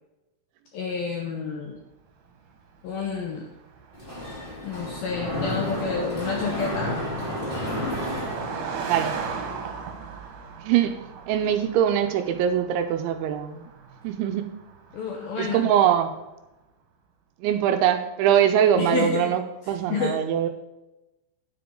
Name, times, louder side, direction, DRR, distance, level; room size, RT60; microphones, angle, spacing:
voice 1, 0.7-1.8 2.8-3.5 4.6-7.0 14.9-15.7 18.8-19.3 19.9-20.2, left 5 dB, 80° left, 1 dB, 2.2 m, -29 dB
Car passing by, 2.4-16.1, right 6 dB, 65° right, 2.8 m, -39 dB
Mechanisms, 3.9-9.1, left 1 dB, 15° left, 1.9 m, -31 dB
voice 2, 8.8-9.2 10.6-11.0 11.3-13.6 14.0-14.5 15.4-16.1 17.4-20.5, right 9 dB, 80° right, 8 dB, 3.0 m, -22 dB
9.9 x 8.6 x 3.7 m, 0.97 s
omnidirectional pair, 5.5 m